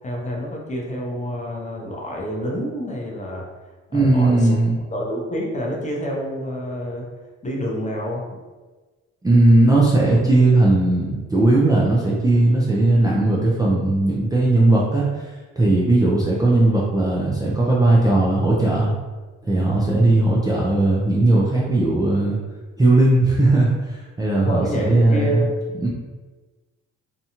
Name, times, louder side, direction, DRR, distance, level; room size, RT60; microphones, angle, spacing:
voice 1, 0.0-3.5 3.9-4.6 4.9-7.1 7.4-8.2 24.4-25.5, equal, 25° left, -1 dB, 0.7 m, -28 dB
voice 2, 3.9-4.7 9.2-15.0 15.6-18.9 19.4-22.4 22.8-25.4 25.8-25.9, right 2 dB, 15° right, -5 dB, 0.4 m, -17 dB
2.7 x 2.2 x 2.8 m, 1.3 s
cardioid pair, 90°, 30 cm